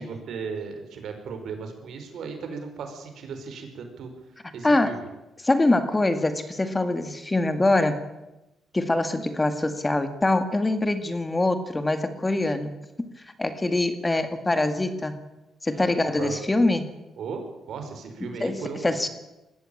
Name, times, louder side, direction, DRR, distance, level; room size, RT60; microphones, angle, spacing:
voice 1, 0.0-4.1 4.5-5.0 15.7-16.3 17.2-19.0, right 5 dB, 70° right, 5 dB, 5.1 m, -36 dB
voice 2, 4.6-5.0 5.4-8.0 8.7-12.7 13.4-15.2 15.6-16.9 18.2-19.1, left 2 dB, 15° left, 9 dB, 2.1 m, -24 dB
20.5 x 16.0 x 8.8 m, 0.99 s
cardioid pair, 90°, 0 cm